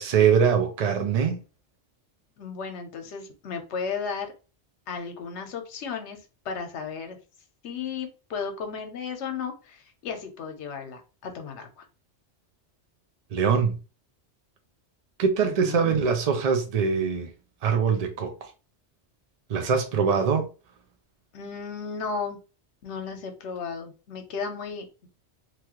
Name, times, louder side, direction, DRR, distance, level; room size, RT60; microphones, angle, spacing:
voice 1, 0.0-1.4 13.3-13.8 15.2-17.3 17.6-18.5 19.5-20.5, right 6 dB, 60° right, 0.4 m, -23 dB
voice 2, 2.4-4.3 4.9-6.2 6.4-7.2 7.6-11.8 15.4-16.0 21.3-22.4 22.8-25.1, left 5 dB, 80° left, 1.0 m, -34 dB
2.9 x 2.3 x 2.9 m
omnidirectional pair, 1.2 m